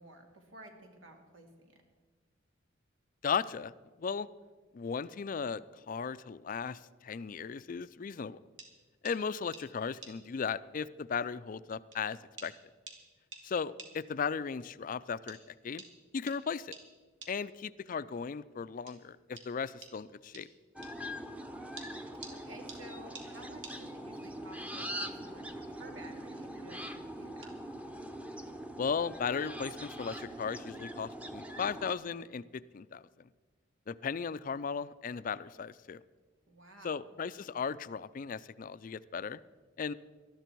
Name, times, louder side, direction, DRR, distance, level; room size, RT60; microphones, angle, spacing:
voice 1, 0.0-1.7 22.3-27.6 36.5-37.1, right 1 dB, 90° right, 3 dB, 2.4 m, -53 dB
voice 2, 3.2-3.7 4.0-4.3 4.7-8.4 9.0-12.5 13.4-15.8 16.1-16.7 17.3-20.5 28.8-33.3 33.9-36.0 36.8-39.4 39.8-39.9, left 6 dB, 45° left, 16 dB, 0.4 m, -36 dB
sound 1, 8.6-8.7 9.1-9.2 9.5-9.7 10.0-10.2 11.1-11.2 11.9-12.0 12.4-12.5 12.9-13.0 13.3-13.5 13.8-14.0 15.3-15.4 15.8-15.9 16.3-16.4 16.7-16.9 17.2-17.4 18.9-19.0 19.4-19.5 19.8-19.9 20.3-20.5 20.8-20.9 21.8-22.4 22.7-22.8 23.2-23.3 23.6-23.8 25.4-25.7 26.0-26.3 27.4-27.5, right 4 dB, 65° right, 2.3 m, -48 dB
sound 2, 20.7-31.9, equal, 5° right, 0.7 m, -43 dB
19.5 x 12.5 x 4.6 m, 1.4 s
head